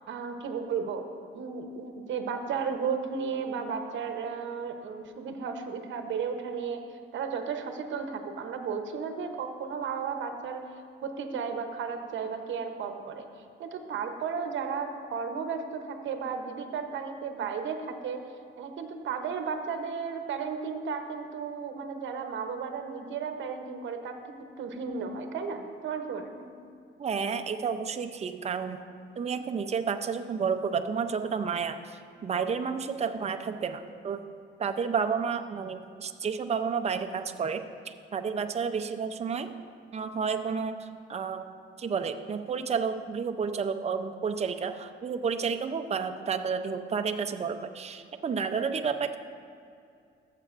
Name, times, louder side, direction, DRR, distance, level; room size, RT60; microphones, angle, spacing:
voice 1, 0.1-1.1 1.3-6.8 7.1-10.7 11.0-13.3 13.6-18.2 18.6-24.2 24.6-26.5, right 6 dB, 70° right, 6 dB, 0.9 m, -34 dB
voice 2, 27.0-28.8 29.2-34.2 34.6-39.5 39.9-41.5 41.8-49.2, right 6 dB, 35° right, 7 dB, 0.6 m, -31 dB
14.5 x 7.5 x 2.5 m, 2.4 s
cardioid pair, 90°, 20 cm